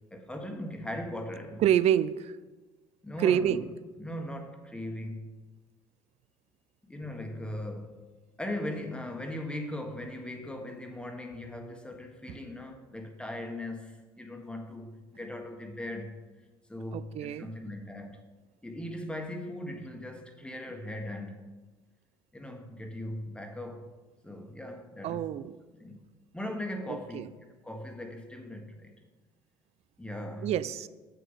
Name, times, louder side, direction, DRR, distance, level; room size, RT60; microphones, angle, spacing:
voice 1, 0.1-1.7 3.0-3.6 4.0-5.4 6.9-8.0 8.4-16.2 16.7-18.2 18.6-21.5 22.3-23.9 24.2-25.3 25.8-26.0 26.3-28.9 30.0-30.5, left 1 dB, 5° left, 4 dB, 1.4 m, -39 dB
voice 2, 1.6-2.3 3.2-3.7 12.3-12.4 16.9-17.5 25.0-25.6 26.9-27.3 30.4-30.9, right 10 dB, 50° right, 16 dB, 0.5 m, -27 dB
7.5 x 6.5 x 5.5 m, 1.2 s
hypercardioid pair, 60°, 13 cm